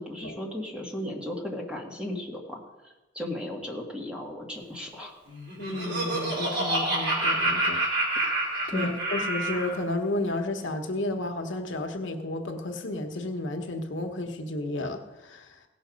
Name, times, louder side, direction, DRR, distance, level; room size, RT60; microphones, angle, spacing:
voice 1, 0.0-5.2 8.7-9.0, left 1 dB, 5° right, -1 dB, 1.8 m, -35 dB
Laughter, 5.3-9.8, right 2 dB, 60° right, 4.2 m, -28 dB
voice 2, 5.6-7.8 8.1-8.3 8.7-15.5, left 2 dB, 75° left, 4 dB, 1.1 m, -32 dB
17.0 x 6.2 x 5.2 m, 1.1 s
head